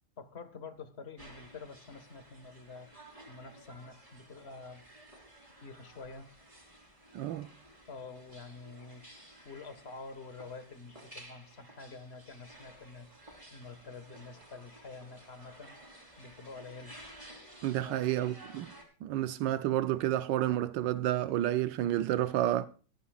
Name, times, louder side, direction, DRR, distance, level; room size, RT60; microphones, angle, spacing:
voice 1, 0.2-2.9 3.3-4.8 5.4-6.3 7.9-13.1 13.5-15.8 16.2-16.9 17.8-18.1, left 4 dB, 35° left, 1.7 m, -48 dB
sound 1, 1.2-18.8, right 1 dB, 20° right, 3.7 m, -54 dB
voice 2, 7.1-7.5 17.6-18.7 19.0-22.7, right 13 dB, 90° right, 1.4 m, -30 dB
24.0 x 9.8 x 2.4 m
omnidirectional pair, 1.9 m